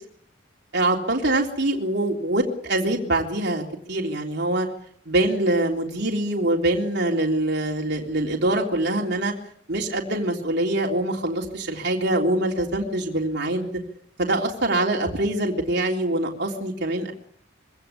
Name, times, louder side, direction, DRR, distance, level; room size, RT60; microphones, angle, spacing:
voice 1, 0.7-3.6 3.9-4.7 5.1-9.3 9.7-13.8 14.2-17.1, right 1 dB, 55° right, 0 dB, 3.6 m, -24 dB
24.5 x 17.0 x 8.6 m, 0.67 s
head